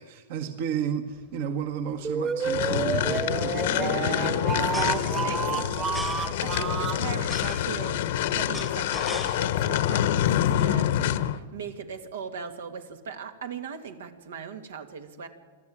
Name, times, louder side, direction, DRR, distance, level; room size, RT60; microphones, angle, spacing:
voice 1, 0.0-3.6 3.9-4.4, right 8 dB, 60° right, 7 dB, 1.6 m, -33 dB
sound 1, 1.2-1.4 1.6-1.7 1.9-2.2 3.2-9.8 10.2-10.6, left 1 dB, ahead, 1.1 m, -41 dB
sound 2, 2.0-7.0, right 6 dB, 25° right, 1.3 m, -30 dB
sound 3, 2.4-11.4, left 11 dB, 65° left, 1.1 m, -26 dB
voice 2, 3.7-15.3, right 6 dB, 85° right, 6 dB, 2.4 m, -39 dB
25.0 x 13.5 x 8.7 m, 1.5 s
hypercardioid pair, 140°, 0 cm